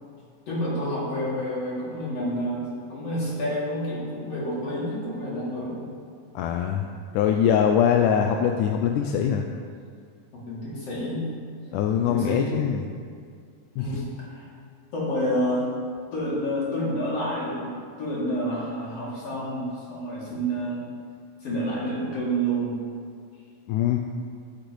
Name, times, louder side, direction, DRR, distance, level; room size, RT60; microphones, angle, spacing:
voice 1, 0.5-5.9 10.3-11.3 12.0-12.6 13.8-14.4 14.9-15.7 16.1-20.8 21.4-22.8, equal, 45° left, -7 dB, 3.6 m, -29 dB
voice 2, 6.4-6.9 7.1-9.5 11.7-12.8 13.8-14.0 23.7-24.0, left 8 dB, 80° left, 4 dB, 1.9 m, -22 dB
12.0 x 10.5 x 3.1 m, 2.1 s
omnidirectional pair, 3.9 m